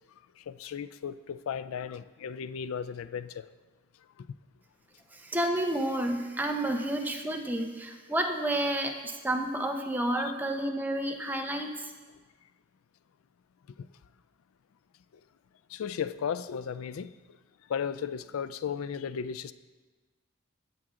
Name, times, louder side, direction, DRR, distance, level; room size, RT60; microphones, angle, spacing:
voice 1, 0.5-3.4 13.8-13.9 15.7-17.1 17.7-19.5, left 7 dB, 90° left, 0.4 m, -35 dB
voice 2, 5.1-11.9, right 1 dB, 10° right, 0.7 m, -30 dB
15.5 x 6.0 x 3.7 m
head